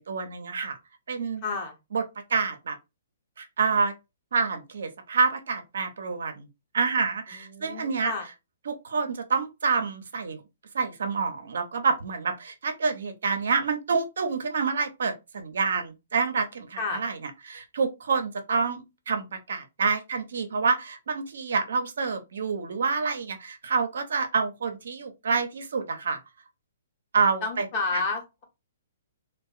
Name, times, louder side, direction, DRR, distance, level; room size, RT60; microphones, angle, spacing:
voice 1, 0.1-0.8 1.1-1.4 1.9-2.0 2.3-2.8 3.4-3.9 4.3-6.5 6.7-8.1 8.7-10.4 10.7-17.2 17.5-26.2 27.1-27.6, right 5 dB, 75° right, 0.6 m, -27 dB
voice 2, 1.4-1.8 7.3-8.3 16.8-17.0 27.4-28.4, left 4 dB, 40° left, 1.0 m, -31 dB
2.5 x 2.1 x 2.4 m
hypercardioid pair, 135°, 0 cm